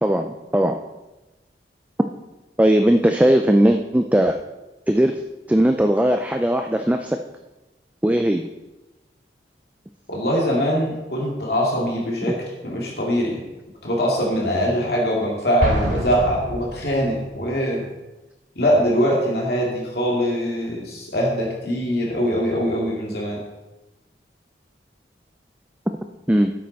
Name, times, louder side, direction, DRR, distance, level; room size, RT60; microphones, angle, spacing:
voice 1, 0.0-0.8 2.6-4.4 4.9-5.2 5.5-7.2 8.0-8.5 26.3-26.5, right 1 dB, 10° right, 5 dB, 0.4 m, -18 dB
voice 2, 10.1-12.4 12.6-13.4 13.8-17.8 18.6-23.4, equal, 60° left, -3 dB, 2.3 m, -22 dB
Explosion, 15.6-17.4, equal, 45° right, 1.8 m, -26 dB
12.5 x 8.6 x 4.0 m, 1.1 s
head